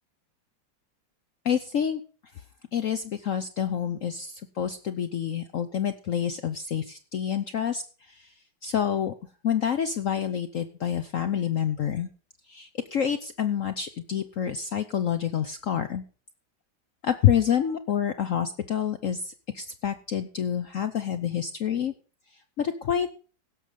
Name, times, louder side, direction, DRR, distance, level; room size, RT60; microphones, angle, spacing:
voice 1, 1.4-2.0 2.7-7.8 8.1-8.3 8.6-9.1 9.4-12.1 12.5-16.0 17.0-21.9 22.6-23.1, left 9 dB, 65° left, 10 dB, 0.8 m, -27 dB
16.5 x 6.3 x 5.1 m, 0.38 s
omnidirectional pair, 2.1 m